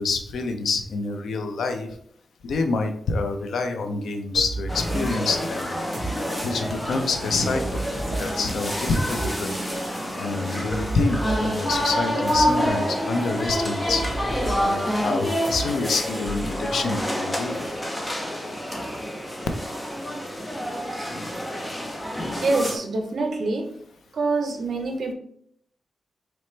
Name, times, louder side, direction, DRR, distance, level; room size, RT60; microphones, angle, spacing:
voice 1, 0.0-1.9 2.4-5.7 6.4-7.8 8.1-9.6 10.2-14.0 14.6-17.6, left 3 dB, 85° left, 6 dB, 0.5 m, -27 dB
sound 1, 4.3-17.0, right 2 dB, 35° right, 1.7 m, -34 dB
Asda checkouts, 4.7-22.8, equal, 10° left, 0.6 m, -28 dB
voice 2, 22.3-23.7 24.1-25.1, right 3 dB, 60° right, 4 dB, 0.7 m, -25 dB
4.3 x 3.0 x 3.1 m, 0.66 s
wide cardioid pair, 160°, 0 cm